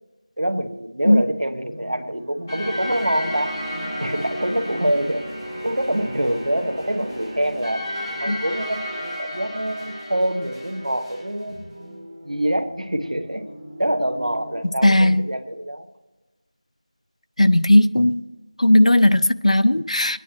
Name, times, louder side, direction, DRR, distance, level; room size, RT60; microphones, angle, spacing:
voice 1, 0.4-3.5 4.0-5.2 5.6-7.8 8.2-11.6 12.2-13.4 13.8-15.8, right 1 dB, 80° right, 9 dB, 1.3 m, -25 dB
sound 1, 1.2-14.6, equal, 10° right, 0.4 m, -41 dB
sound 2, 2.5-11.3, equal, 15° left, 3.9 m, -32 dB
voice 2, 14.8-15.2 17.4-18.2 18.6-20.2, left 1 dB, 80° left, 13 dB, 0.5 m, -16 dB
23.0 x 9.9 x 3.1 m, 1.2 s
figure-of-eight pair, 175°, 3 cm